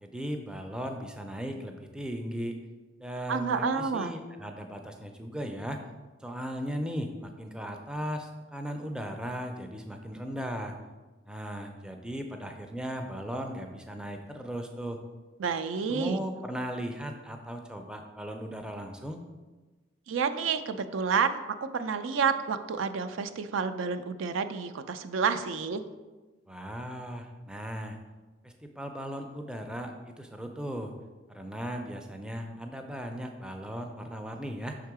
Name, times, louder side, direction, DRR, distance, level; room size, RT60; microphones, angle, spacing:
voice 1, 0.0-2.6 3.0-5.8 6.2-10.8 11.3-15.0 15.9-19.2 26.5-28.0 28.4-30.9 31.3-34.8, equal, 5° right, 4 dB, 0.3 m, -37 dB
voice 2, 3.3-4.1 15.4-16.2 20.1-25.8, right 5 dB, 90° right, 10 dB, 0.4 m, -29 dB
5.5 x 3.7 x 4.7 m, 1.2 s
head